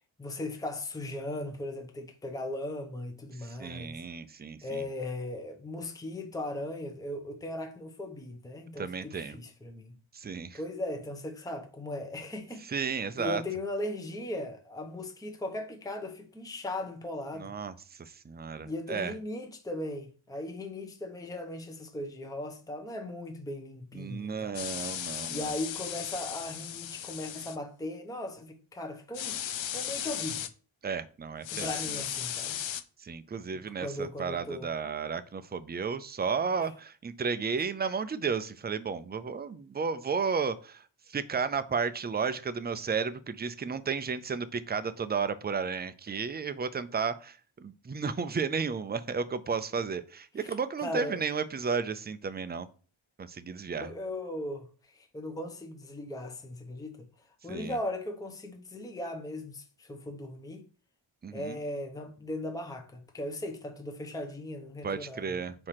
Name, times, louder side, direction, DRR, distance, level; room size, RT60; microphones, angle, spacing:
voice 1, 0.2-4.0 4.6-10.0 10.5-17.5 18.6-24.6 25.3-29.4 29.7-30.5 31.5-32.6 33.8-34.7 50.4-51.2 53.8-57.1 57.4-60.6 61.3-65.4, left 1 dB, 5° left, 0.8 m, -38 dB
voice 2, 3.4-4.8 8.8-9.4 10.1-10.6 12.7-13.4 17.4-17.7 18.0-19.1 23.9-25.5 30.8-31.7 33.0-40.8 41.1-52.7 53.2-53.9 57.5-57.8 61.2-61.6 64.8-65.7, right 5 dB, 20° right, 0.4 m, -33 dB
sound 1, 24.5-27.6 29.1-30.5 31.4-32.8, left 10 dB, 65° left, 0.6 m, -36 dB
4.8 x 4.4 x 5.7 m
wide cardioid pair, 115°, 50 cm